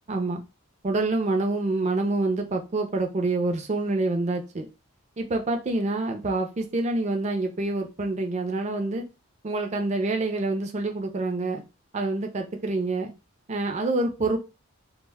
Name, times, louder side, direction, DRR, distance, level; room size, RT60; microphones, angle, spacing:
voice 1, 0.1-0.4 0.8-4.7 5.2-9.0 9.4-11.6 11.9-13.1 13.5-14.4, right 2 dB, 35° right, 4 dB, 0.4 m, -27 dB
2.1 x 2.0 x 3.2 m, 0.29 s
head